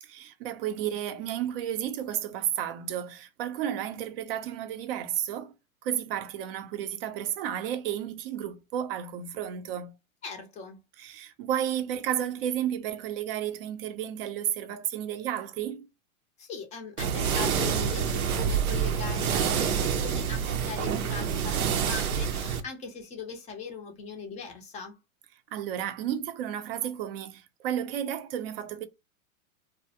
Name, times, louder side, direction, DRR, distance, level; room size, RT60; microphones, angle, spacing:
voice 1, 0.0-5.5 5.8-9.9 11.0-15.9 25.5-28.9, right 10 dB, 45° right, 0.5 m, -32 dB
voice 2, 10.2-10.8 16.4-25.0, left 5 dB, 15° left, 0.4 m, -40 dB
sound 1, 17.0-22.6, right 7 dB, 90° right, 0.6 m, -27 dB
2.3 x 2.0 x 2.7 m
hypercardioid pair, 120°, 42 cm